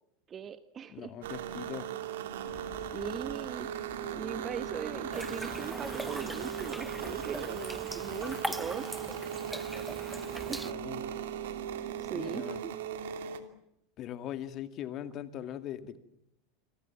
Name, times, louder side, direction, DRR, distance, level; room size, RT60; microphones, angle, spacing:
voice 1, 0.3-1.1 2.9-3.7 4.2-8.8 10.5-10.7 12.0-12.7, right 8 dB, 30° right, 13 dB, 1.2 m, -40 dB
voice 2, 0.9-1.9 10.5-11.0 12.1-12.6 14.0-16.0, left 11 dB, 45° left, 10 dB, 2.2 m, -40 dB
sound 1, 1.2-13.4, right 9 dB, 70° right, 2.8 m, -38 dB
Waves surf, 2.5-8.4, left 5 dB, 25° left, 2.0 m, -52 dB
sound 2, 5.1-10.7, equal, ahead, 0.9 m, -41 dB
28.5 x 22.5 x 7.3 m, 0.80 s
hypercardioid pair, 85°, 0 cm